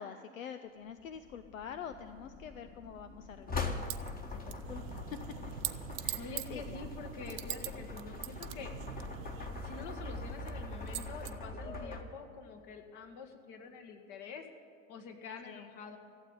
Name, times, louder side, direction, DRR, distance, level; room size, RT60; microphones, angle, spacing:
voice 1, 0.0-3.7 4.0-5.2 6.0-6.9 15.4-15.7, left 7 dB, 80° left, 10 dB, 0.7 m, -46 dB
sound 1, 1.0-12.0, left 3 dB, 20° left, 1.5 m, -42 dB
sound 2, 3.9-4.1 4.5-7.7 8.0-9.9 10.5-10.6 10.9-11.3, right 18 dB, 50° right, 0.8 m, -41 dB
sound 3, 4.6-9.9, right 12 dB, 80° right, 0.5 m, -49 dB
voice 2, 6.2-8.7 9.4-14.5 14.9-16.0, left 5 dB, 50° left, 5 dB, 1.9 m, -47 dB
15.0 x 8.3 x 9.1 m, 2.4 s
hypercardioid pair, 80°, 39 cm